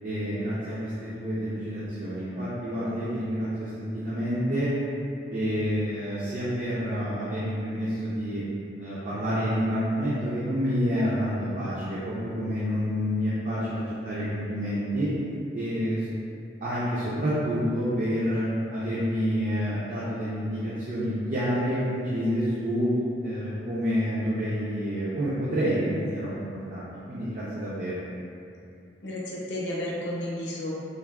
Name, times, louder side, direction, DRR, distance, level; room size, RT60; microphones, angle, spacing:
voice 1, 0.0-4.7 5.3-8.4 8.8-15.1 15.5-16.0 16.6-22.9 23.2-28.0, equal, 45° right, -10 dB, 0.4 m, -28 dB
voice 2, 29.0-30.7, left 1 dB, 70° left, -5 dB, 0.5 m, -32 dB
3.3 x 2.0 x 2.2 m, 2.5 s
head